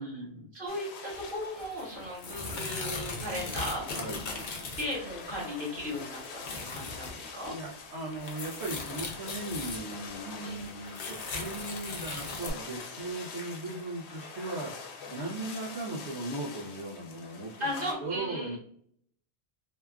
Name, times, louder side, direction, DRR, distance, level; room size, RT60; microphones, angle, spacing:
voice 1, 0.0-0.5 3.9-4.2 7.4-18.6, right 2 dB, 85° right, -5 dB, 0.9 m, -38 dB
voice 2, 0.5-3.8 4.8-7.6 10.4-10.6 17.6-18.6, left 1 dB, 55° right, -4 dB, 1.3 m, -36 dB
sound 1, 0.7-17.9, left 4 dB, 85° left, 0.8 m, -45 dB
sound 2, 1.1-1.2 1.6-5.4 5.8-7.1 7.4-7.5 7.8-10.1 10.6-12.5, left 3 dB, 55° left, 0.6 m, -39 dB
2.9 x 2.3 x 2.2 m, 0.62 s
omnidirectional pair, 1.1 m